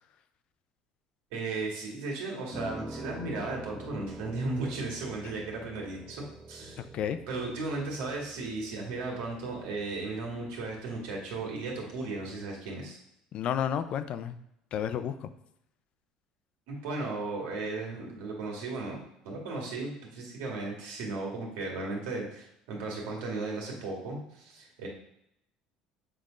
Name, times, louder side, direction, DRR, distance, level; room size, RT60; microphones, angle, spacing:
voice 1, 1.3-6.2 6.5-6.9 7.3-13.0 16.7-19.0 19.2-24.9, right 3 dB, 85° right, -1 dB, 2.2 m, -35 dB
Piano, 2.5-12.6, right 1 dB, 5° right, 0.5 m, -47 dB
voice 2, 6.8-7.2 13.3-14.4 14.7-15.3, left 9 dB, 50° left, 11 dB, 0.5 m, -31 dB
7.6 x 3.5 x 5.1 m, 0.79 s
cardioid pair, 120°, 2 cm